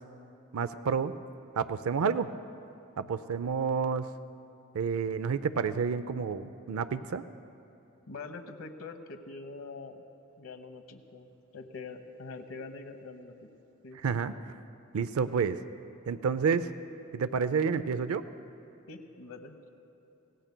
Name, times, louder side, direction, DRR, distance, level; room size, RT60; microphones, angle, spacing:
voice 1, 0.5-1.1 1.6-2.3 3.0-4.1 4.7-7.2 14.0-14.3 14.9-15.6 16.1-16.7 17.1-18.2, right 6 dB, 90° right, 12 dB, 0.4 m, -29 dB
voice 2, 8.1-10.0 10.4-13.5 13.8-14.0 18.9-19.5, left 3 dB, 85° left, 7 dB, 1.0 m, -44 dB
25.5 x 19.0 x 2.2 m, 3.0 s
head